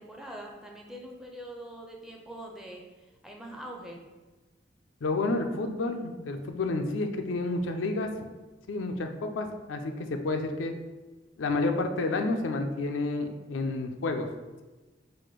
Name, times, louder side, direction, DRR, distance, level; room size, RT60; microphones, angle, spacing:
voice 1, 0.0-4.0, right 1 dB, 5° right, 0 dB, 0.4 m, -43 dB
voice 2, 5.0-8.1 8.7-10.7 11.4-14.3, left 2 dB, 90° left, 5 dB, 0.5 m, -30 dB
4.2 x 2.4 x 4.6 m, 1.2 s
head